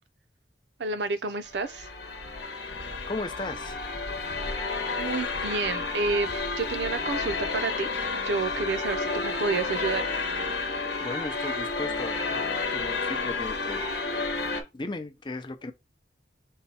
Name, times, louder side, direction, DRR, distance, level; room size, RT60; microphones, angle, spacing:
voice 1, 0.8-1.9 5.0-10.0, right 4 dB, 75° right, 0.6 m, -30 dB
sound 1, 1.4-14.6, left 3 dB, 70° left, 1.0 m, -31 dB
voice 2, 3.1-3.8 11.0-13.9 14.7-15.7, left 2 dB, 25° left, 0.5 m, -36 dB
5.5 x 2.3 x 4.1 m
head